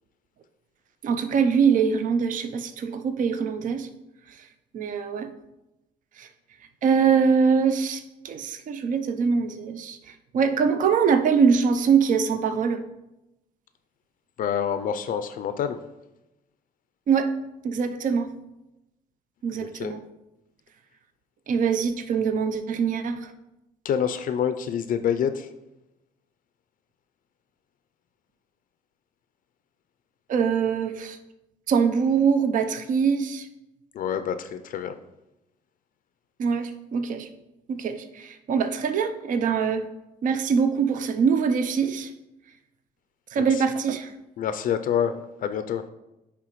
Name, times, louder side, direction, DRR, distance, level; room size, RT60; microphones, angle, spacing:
voice 1, 1.0-3.9 4.3-4.5 4.7-5.3 6.2-6.3 6.8-12.8 17.1-17.3 17.6-18.3 19.4-20.0 21.5-23.3 30.3-31.2 31.7-33.5 36.4-37.3 37.7-39.9 40.2-42.1 43.3-44.1, right 6 dB, 55° right, 9 dB, 0.5 m, -23 dB
voice 2, 14.4-15.8 19.6-19.9 23.8-25.5 33.9-35.0 43.5-43.6 44.4-45.8, left 8 dB, 55° left, 10 dB, 0.4 m, -27 dB
9.5 x 3.4 x 3.0 m, 0.94 s
cardioid pair, 85°, 16 cm